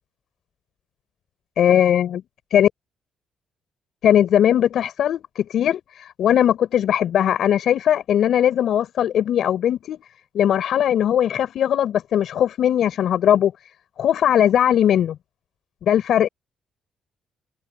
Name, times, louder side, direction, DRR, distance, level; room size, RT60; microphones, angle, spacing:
voice 1, 1.6-2.2 2.5-2.7 4.0-10.0 10.3-13.5 14.0-15.1 15.9-16.3, left 10 dB, 70° left, 6.3 m, -19 dB
cardioid pair, 90°, 0 cm